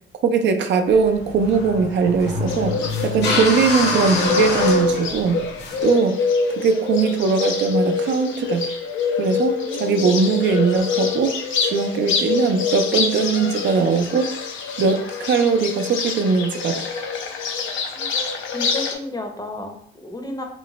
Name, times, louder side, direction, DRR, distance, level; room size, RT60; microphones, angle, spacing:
voice 1, 0.2-5.4 5.8-6.2 6.6-8.7 9.2-14.3 14.8-16.9, right 5 dB, 65° right, 6 dB, 0.4 m, -20 dB
sound 1, 0.9-5.8, left 3 dB, 60° left, 0.9 m, -26 dB
Bird, 2.5-18.9, left 4 dB, 75° left, 0.5 m, -25 dB
voice 2, 9.6-10.1 17.9-18.1 18.5-20.4, left 1 dB, 20° left, 4 dB, 0.6 m, -33 dB
3.0 x 2.1 x 3.8 m, 0.66 s
cardioid pair, 90°, 20 cm